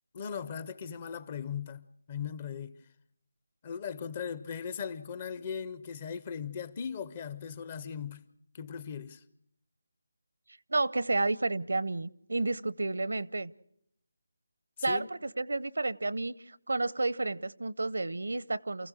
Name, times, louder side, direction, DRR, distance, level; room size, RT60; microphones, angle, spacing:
voice 1, 0.1-2.7 3.6-8.2 8.5-9.2 14.8-15.1, left 7 dB, 25° left, 0.7 m, -38 dB
voice 2, 10.7-13.5 14.8-18.9, right 2 dB, 80° right, 0.7 m, -31 dB
28.5 x 15.5 x 6.3 m
figure-of-eight pair, 165°, 0 cm